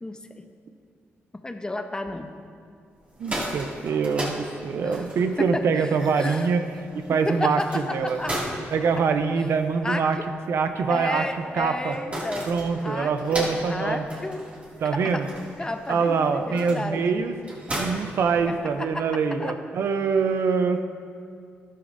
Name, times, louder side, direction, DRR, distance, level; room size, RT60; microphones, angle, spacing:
voice 1, 0.0-0.5 1.3-2.3 4.8-4.9 5.4-6.5 7.1-8.4 9.8-10.2 10.9-12.5 12.8-14.5 15.1-15.3 15.6-17.1 18.8-19.1 19.4-19.5, left 2 dB, 15° left, 7 dB, 0.8 m, -32 dB
sound 1, 3.0-19.0, right 1 dB, 30° right, 2.4 m, -37 dB
voice 2, 3.2-8.2 8.7-10.2 10.5-11.3 11.5-12.0 12.5-14.1 14.8-15.3 15.9-17.4 17.8-20.8, right 5 dB, 70° right, 8 dB, 0.7 m, -24 dB
12.5 x 12.0 x 2.7 m, 2.3 s
cardioid pair, 80°, 5 cm